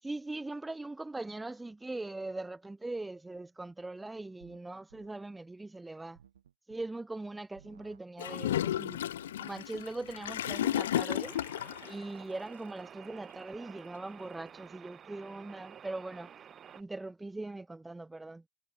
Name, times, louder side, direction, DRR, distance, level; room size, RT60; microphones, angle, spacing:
voice 1, 0.0-6.2 6.7-9.0 9.4-11.4 11.8-16.3 16.7-18.4, right 2 dB, 5° right, 3.7 m, -41 dB
sound 1, 4.4-4.6 4.9-5.1 6.1-6.9 7.5-8.0 8.3-10.8, right 9 dB, 65° right, 4.8 m, -60 dB
Gurgling / Toilet flush, 8.2-11.9, left 11 dB, 60° left, 0.7 m, -33 dB
sound 2, 11.2-16.8, right 8 dB, 25° right, 2.7 m, -51 dB
figure-of-eight pair, 90°, 0 cm